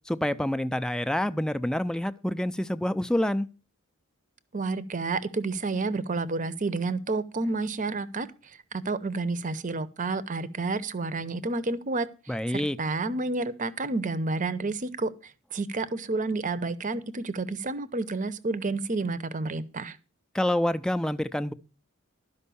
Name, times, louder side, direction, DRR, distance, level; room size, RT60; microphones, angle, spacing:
voice 1, 0.1-3.5 12.3-12.8 20.3-21.5, left 1 dB, 5° left, 0.4 m, -27 dB
voice 2, 4.5-8.3 8.7-15.1 15.5-20.0, right 3 dB, 35° right, 0.7 m, -30 dB
12.5 x 5.4 x 6.9 m
head